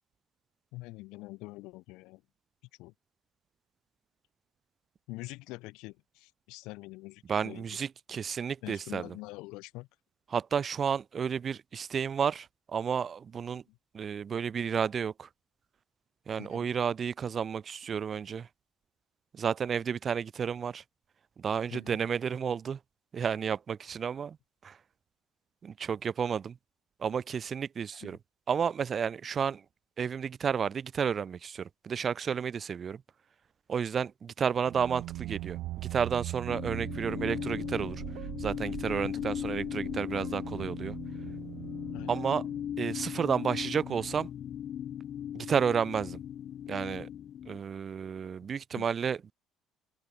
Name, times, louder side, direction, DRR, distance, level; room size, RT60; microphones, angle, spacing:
voice 1, 0.7-2.2 2.8-2.9 5.1-7.7 8.6-9.9 13.7-13.8 16.4-16.7 21.7-22.0 27.9-28.1 39.0-39.3 41.9-42.1 48.7-48.9, left 22 dB, 80° left, 4.2 m, -45 dB
voice 2, 7.3-9.1 10.3-13.6 13.9-15.3 16.3-18.5 19.3-20.8 21.4-22.8 23.1-24.4 24.6-24.8 25.6-26.6 27.0-28.2 28.5-29.6 30.0-33.0 33.7-38.0 38.4-41.0 42.1-42.4 42.8-44.3 45.3-46.2 46.7-47.1 47.5-49.3, right 7 dB, 45° right, 1.0 m, -31 dB
sound 1, 34.6-43.1, right 17 dB, 75° right, 2.5 m, -41 dB
sound 2, 36.5-47.6, left 10 dB, 55° left, 0.8 m, -38 dB
supercardioid pair, 75°, 0 cm